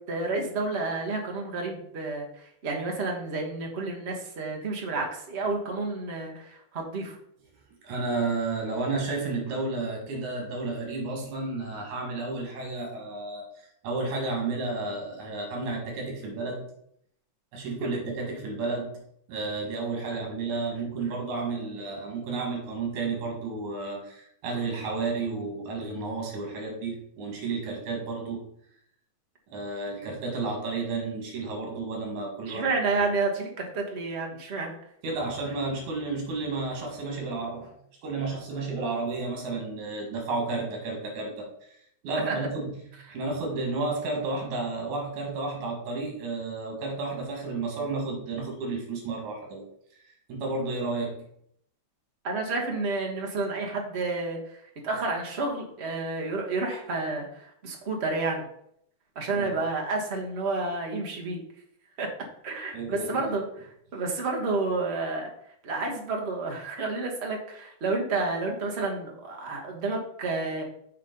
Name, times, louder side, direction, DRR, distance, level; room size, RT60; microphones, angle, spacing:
voice 1, 0.1-7.2 32.5-34.7 42.3-42.4 52.2-58.4 59.1-61.4 62.0-62.1 62.4-63.4 63.9-65.3 65.6-70.6, right 3 dB, 40° right, 0 dB, 0.9 m, -30 dB
voice 2, 7.8-16.7 17.5-19.0 19.3-28.4 29.5-32.7 33.0-33.1 35.0-37.7 38.0-41.8 42.0-42.8 43.1-49.7 50.0-51.2 59.3-59.6 62.7-63.3, right 3 dB, 90° right, 0 dB, 3.4 m, -32 dB
7.3 x 4.3 x 5.3 m, 0.70 s
omnidirectional pair, 3.3 m